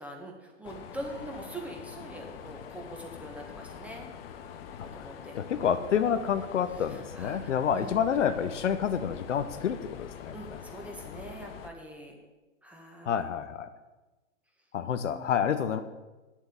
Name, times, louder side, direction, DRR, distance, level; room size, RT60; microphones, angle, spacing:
voice 1, 0.0-4.1 4.8-5.8 6.9-7.4 7.7-7.9 10.3-12.2 12.6-13.2 15.0-15.2, right 1 dB, 5° right, 0 dB, 1.8 m, -43 dB
Mechanisms, 0.6-11.7, left 8 dB, 50° left, 1.1 m, -44 dB
voice 2, 4.8-10.6 13.1-13.7 14.7-15.8, left 8 dB, 65° left, 10 dB, 0.9 m, -29 dB
9.5 x 7.3 x 8.0 m, 1.1 s
hypercardioid pair, 115°, 39 cm